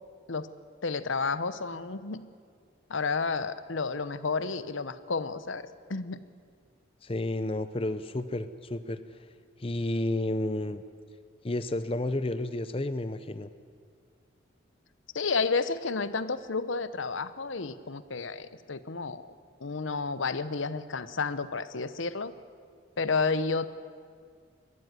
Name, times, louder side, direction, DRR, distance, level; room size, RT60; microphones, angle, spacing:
voice 1, 0.8-2.2 2.9-6.2 15.1-19.3 19.6-22.3 23.0-23.7, left 4 dB, 80° left, 14 dB, 0.9 m, -31 dB
voice 2, 7.0-9.0 9.6-10.8 11.4-13.5, left 1 dB, 30° left, 12 dB, 0.6 m, -31 dB
21.5 x 14.0 x 9.7 m, 2.1 s
head